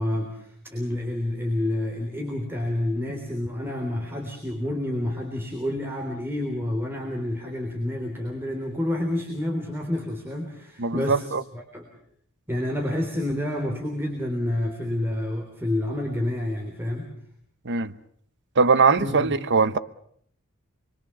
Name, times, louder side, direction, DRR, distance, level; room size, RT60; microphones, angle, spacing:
voice 1, 0.0-11.3 11.5-11.9 12.5-17.1 19.0-19.4, left 1 dB, 10° right, 3.5 m, -29 dB
voice 2, 10.8-11.4 17.6-17.9 18.6-19.8, right 4 dB, 55° right, 1.0 m, -21 dB
27.0 x 22.5 x 7.0 m
head